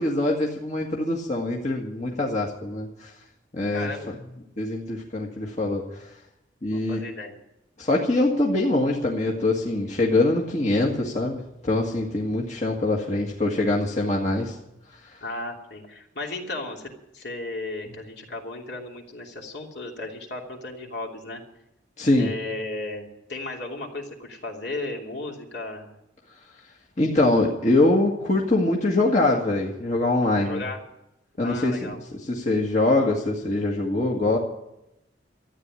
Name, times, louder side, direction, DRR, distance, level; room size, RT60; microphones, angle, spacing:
voice 1, 0.0-3.1 3.5-3.9 4.6-6.1 6.6-7.0 7.8-14.6 15.0-15.2 22.0-22.3 27.0-30.6 31.4-34.4, left 2 dB, 40° left, -1 dB, 1.8 m, -23 dB
voice 2, 3.7-4.1 6.7-7.3 15.2-21.4 22.2-25.9 30.4-30.8 31.4-32.0, left 2 dB, 60° left, 0 dB, 3.0 m, -35 dB
13.5 x 9.5 x 9.8 m, 0.86 s
head